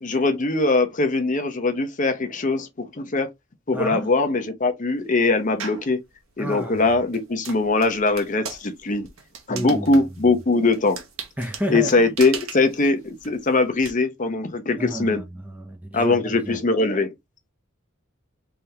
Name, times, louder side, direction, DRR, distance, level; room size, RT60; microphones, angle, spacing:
voice 1, 0.0-3.3 3.7-6.0 6.4-9.1 9.5-11.0 11.7-15.2 15.9-17.1, left 3 dB, 40° left, 0.8 m, -21 dB
voice 2, 3.7-4.1 6.4-6.8 9.5-10.0 11.4-12.1 14.8-15.2 15.5-16.2 16.4-16.6, equal, 5° right, 0.5 m, -30 dB
sound 1, 5.6-5.9 6.5-13.9, right 6 dB, 80° right, 1.0 m, -38 dB
3.5 x 3.4 x 2.8 m
head